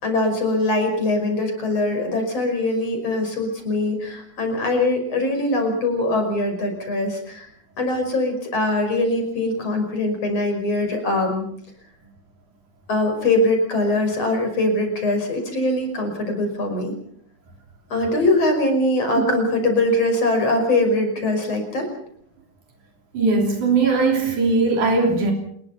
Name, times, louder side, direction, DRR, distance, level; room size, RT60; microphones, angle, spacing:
voice 1, 0.0-7.5 7.8-11.5 12.9-16.9 17.9-21.9, left 2 dB, 50° left, 6.6 m, -22 dB
voice 2, 23.1-25.3, right 3 dB, 75° right, 4.8 m, -19 dB
28.0 x 21.0 x 5.7 m
omnidirectional pair, 3.5 m